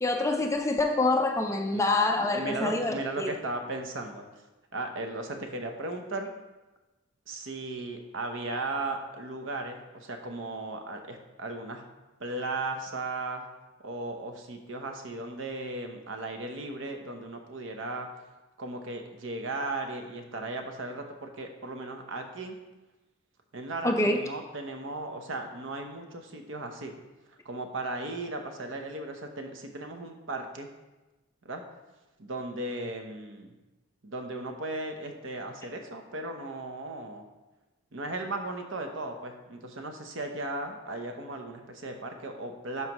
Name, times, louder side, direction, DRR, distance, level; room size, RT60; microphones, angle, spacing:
voice 1, 0.0-3.3 23.8-24.2, left 2 dB, 15° left, 4 dB, 0.3 m, -26 dB
voice 2, 2.2-4.3 4.7-6.3 7.3-11.8 12.2-13.5 13.8-18.1 18.6-22.6 23.5-26.9 27.4-30.7 31.4-31.6 32.2-33.5 34.0-37.3 37.9-42.9, right 2 dB, 60° right, 4 dB, 0.8 m, -36 dB
11.0 x 4.6 x 3.0 m, 1.1 s
head